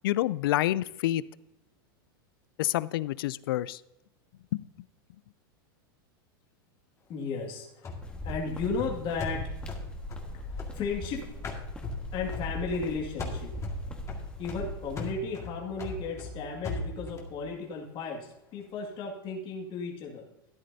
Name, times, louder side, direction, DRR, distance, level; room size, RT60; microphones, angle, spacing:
voice 1, 0.0-1.2 2.6-3.8 4.5-4.7, left 15 dB, 75° left, 20 dB, 0.4 m, -28 dB
voice 2, 7.1-7.9 8.2-9.5 10.1-11.3 12.1-13.5 14.4-20.2, left 4 dB, 45° left, 0 dB, 2.1 m, -35 dB
sound 1, 7.8-11.1 11.4-12.9 13.2-17.3, left 2 dB, 25° left, 1.8 m, -38 dB
sound 2, 8.0-15.1, left 1 dB, 10° left, 1.5 m, -40 dB
13.0 x 10.0 x 2.7 m, 0.90 s
hypercardioid pair, 110°, 12 cm